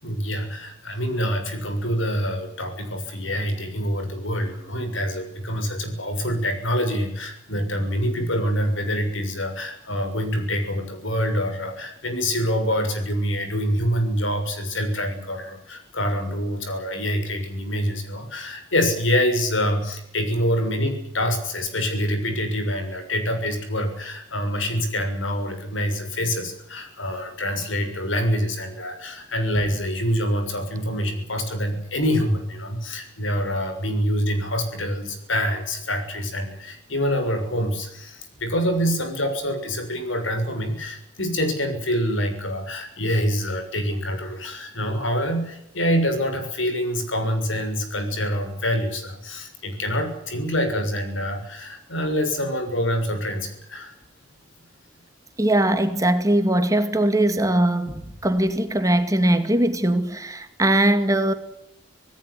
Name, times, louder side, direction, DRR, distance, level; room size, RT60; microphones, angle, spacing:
voice 1, 0.0-53.9, equal, 90° left, 6.8 m, -26 dB
voice 2, 55.4-61.3, right 1 dB, 15° right, 2.2 m, -20 dB
26.5 x 17.5 x 8.3 m
head